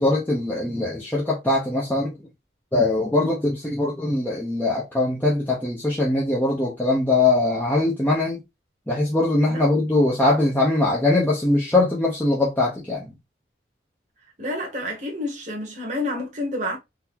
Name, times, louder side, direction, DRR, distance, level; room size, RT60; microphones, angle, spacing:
voice 1, 0.0-2.1 2.7-8.4 8.9-13.1, left 2 dB, 10° left, 0.7 m, -21 dB
voice 2, 14.4-16.8, left 1 dB, 40° right, 1.2 m, -29 dB
3.8 x 2.7 x 2.8 m
head